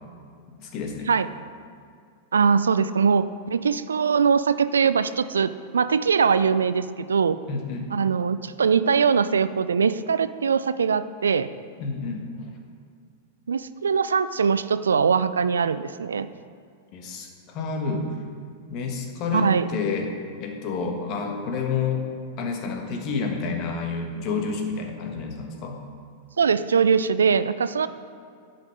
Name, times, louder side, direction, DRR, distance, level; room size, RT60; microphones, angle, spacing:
voice 1, 0.6-1.1 7.5-7.9 11.8-12.5 16.9-18.1 18.7-20.1 20.4-22.0 22.4-25.8, left 5 dB, 45° left, 3 dB, 1.5 m, -29 dB
voice 2, 2.3-7.4 7.9-11.5 13.5-16.3 19.3-19.7 26.4-27.9, right 6 dB, 75° right, 14 dB, 0.3 m, -22 dB
10.5 x 6.0 x 5.0 m, 2.3 s
figure-of-eight pair, 95°, 0 cm